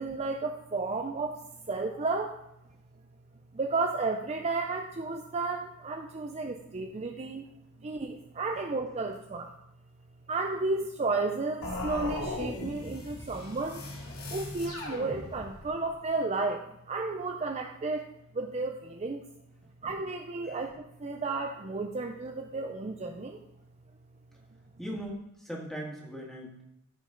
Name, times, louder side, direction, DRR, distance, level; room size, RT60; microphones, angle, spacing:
voice 1, 0.0-2.4 3.5-7.4 7.8-9.5 10.3-13.8 14.3-19.3 19.8-23.4, right 3 dB, 30° right, 3 dB, 0.5 m, -33 dB
sound 1, 11.6-15.7, left 1 dB, 85° left, 2.3 m, -38 dB
voice 2, 24.8-26.6, equal, ahead, -2 dB, 1.9 m, -39 dB
14.0 x 5.3 x 3.8 m, 0.84 s
head